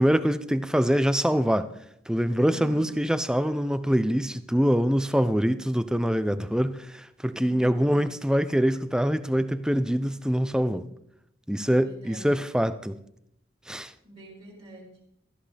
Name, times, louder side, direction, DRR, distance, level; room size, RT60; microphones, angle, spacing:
voice 1, 0.0-1.7 2.1-10.9 11.5-13.0 13.7-13.9, equal, 5° right, 0.5 m, -24 dB
voice 2, 2.4-3.1 7.4-8.0 11.6-12.4 14.0-15.0, right 2 dB, 30° right, 4.0 m, -46 dB
16.5 x 14.0 x 3.4 m
head